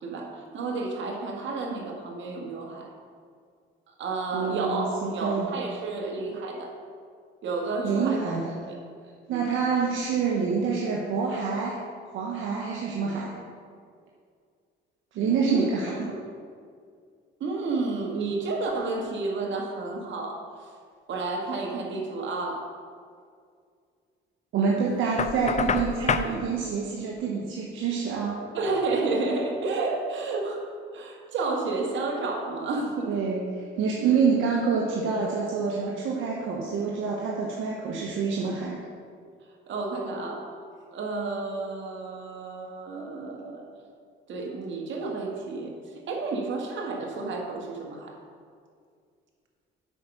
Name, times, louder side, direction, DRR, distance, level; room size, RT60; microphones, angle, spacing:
voice 1, 0.0-2.9 4.0-6.7 7.4-8.4 8.7-8.8 9.3-9.5 15.4-15.7 16.0-16.2 17.4-20.4 21.1-22.7 28.5-30.6 30.9-33.1 39.7-40.5 40.9-43.7 44.3-45.7 46.1-48.2, right 3 dB, 70° right, 0 dB, 1.8 m, -31 dB
voice 2, 4.3-5.5 7.8-8.6 9.3-11.8 12.1-13.3 15.1-16.0 24.5-28.4 33.1-33.4 33.8-38.8, right 5 dB, 85° right, -3 dB, 1.1 m, -27 dB
Knock, 25.2-26.3, left 6 dB, 35° left, 0.5 m, -27 dB
8.2 x 5.5 x 6.1 m, 2.2 s
cardioid pair, 90°, 20 cm